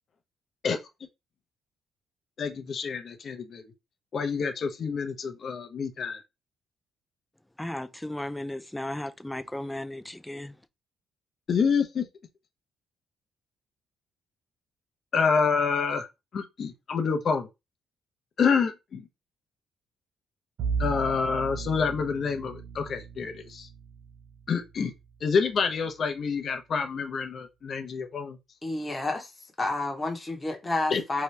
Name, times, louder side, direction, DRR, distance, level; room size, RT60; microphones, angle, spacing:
voice 1, 2.4-3.6 4.1-6.2 11.5-12.1 15.1-16.1 16.3-17.5 18.4-19.0 20.8-23.7 24.5-24.9 25.2-28.4 30.9-31.0, left 5 dB, 55° left, 0.6 m, -27 dB
voice 2, 7.6-10.5, left 1 dB, 10° left, 0.3 m, -35 dB
Bowed string instrument, 20.6-25.7, right 5 dB, 75° right, 0.4 m, -36 dB
voice 3, 28.6-29.3 29.6-31.2, left 2 dB, 25° left, 0.9 m, -30 dB
2.8 x 2.3 x 3.2 m
supercardioid pair, 75°, 0 cm